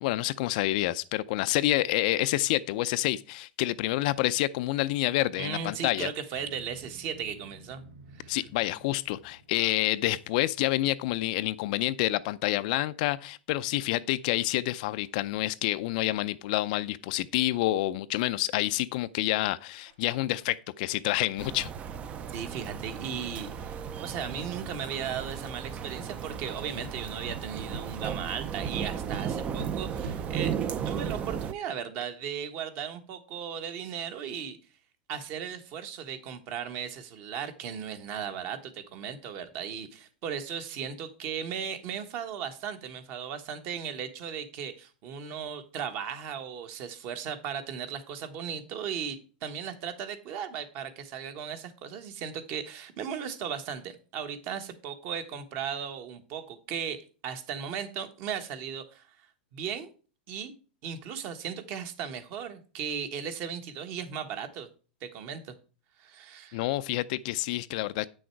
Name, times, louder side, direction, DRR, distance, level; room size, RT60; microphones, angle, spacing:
voice 1, 0.0-6.1 8.3-21.7 66.5-68.1, left 16 dB, 55° left, 0.4 m, -28 dB
voice 2, 5.4-7.8 8.1-8.4 22.3-30.6 30.8-34.6 35.1-59.1 59.5-59.9 60.3-60.5 60.8-64.7 65.0-65.5 66.0-66.6, right 8 dB, 40° right, 1.3 m, -36 dB
Motorcycle, 6.3-11.6, right 1 dB, 80° right, 1.7 m, -53 dB
sound 1, 19.8-20.0 20.4-20.5 20.9-21.0 21.4-21.5 21.9-22.0 22.4-22.5 22.8-23.0 23.4-23.5 23.9-24.0 24.3-24.7 25.3-25.4 25.8-25.9 26.3-26.4 26.8-26.9 27.3-27.4 27.7-27.8 28.2-28.3 28.6-28.7 29.1-29.2 29.6-29.7 30.0-30.2, right 1 dB, 65° right, 2.7 m, -44 dB
sound 2, 21.4-31.5, right 8 dB, 25° right, 0.5 m, -35 dB
8.4 x 6.4 x 4.5 m
supercardioid pair, 150°, 5 cm